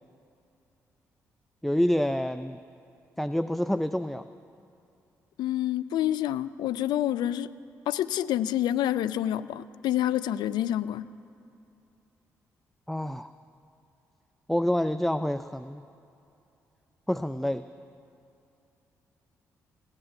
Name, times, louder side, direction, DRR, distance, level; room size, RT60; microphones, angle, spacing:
voice 1, 1.6-2.6 3.2-4.3 12.9-13.3 14.5-15.8 17.1-17.7, equal, 5° left, 11 dB, 0.5 m, -27 dB
voice 2, 5.4-7.5 7.9-11.1, left 12 dB, 75° left, 15 dB, 0.4 m, -28 dB
16.5 x 8.9 x 9.1 m, 2.7 s
hypercardioid pair, 45°, 7 cm